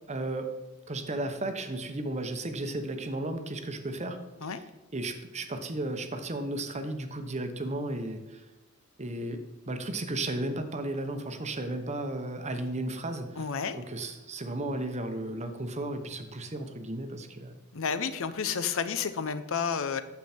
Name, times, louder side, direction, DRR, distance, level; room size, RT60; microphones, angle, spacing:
voice 1, 0.1-0.5 0.9-4.2 4.9-8.4 9.0-13.5 13.7-17.5 18.4-18.6, right 2 dB, 30° right, 7 dB, 0.9 m, -34 dB
voice 2, 13.4-13.8 17.7-20.0, left 6 dB, 65° left, 12 dB, 0.7 m, -31 dB
9.2 x 7.3 x 4.3 m, 1.1 s
head